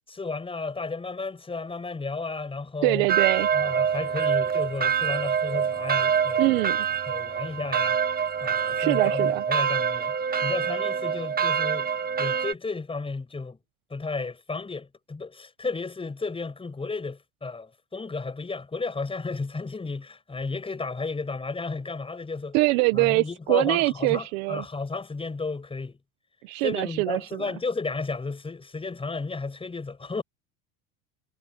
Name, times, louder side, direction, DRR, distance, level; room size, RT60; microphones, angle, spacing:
voice 1, 0.1-3.1 3.5-6.7 7.1-8.0 8.4-10.1 10.4-11.9 12.2-13.6 13.9-22.6 22.9-26.0 26.6-30.2, left 3 dB, 10° left, 6.2 m, -33 dB
voice 2, 2.8-3.5 6.4-6.8 8.8-9.4 22.5-24.6 26.4-27.5, right 23 dB, 65° right, 1.6 m, -24 dB
sound 1, 3.1-12.5, right 7 dB, 20° right, 2.0 m, -25 dB
supercardioid pair, 125°, 43 cm